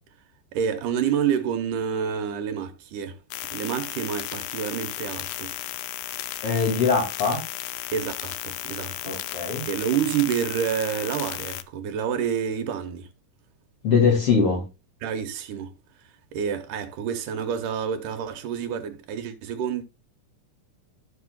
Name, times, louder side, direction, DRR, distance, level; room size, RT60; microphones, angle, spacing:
voice 1, 0.5-3.2 3.5-5.5 7.9-13.1 15.0-15.7 16.3-19.8, right 8 dB, 80° right, 2.4 m, -28 dB
sound 1, 3.3-11.6, left 14 dB, 75° left, 1.7 m, -34 dB
voice 2, 6.4-7.4 9.0-9.6 13.8-14.6, left 5 dB, 45° left, 3.2 m, -22 dB
13.5 x 6.1 x 2.3 m
omnidirectional pair, 3.8 m